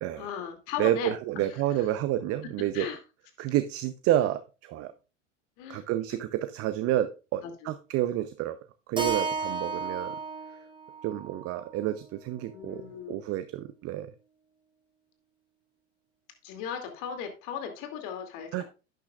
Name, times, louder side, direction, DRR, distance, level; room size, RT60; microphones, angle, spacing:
voice 1, 0.1-1.1 2.7-3.0 5.6-5.8 6.1-6.2 6.9-7.0 7.4-7.7 12.5-13.2 16.4-18.6, left 8 dB, 55° left, 5 dB, 2.6 m, -37 dB
voice 2, 0.8-2.9 3.4-4.9 5.7-8.6 8.9-10.1 11.0-12.8 13.1-14.1 18.5-18.6, right 13 dB, 40° right, 11 dB, 0.7 m, -29 dB
Keyboard (musical), 9.0-13.2, right 4 dB, 15° right, 2.2 m, -35 dB
11.5 x 9.2 x 2.4 m, 0.31 s
hypercardioid pair, 85°, 37 cm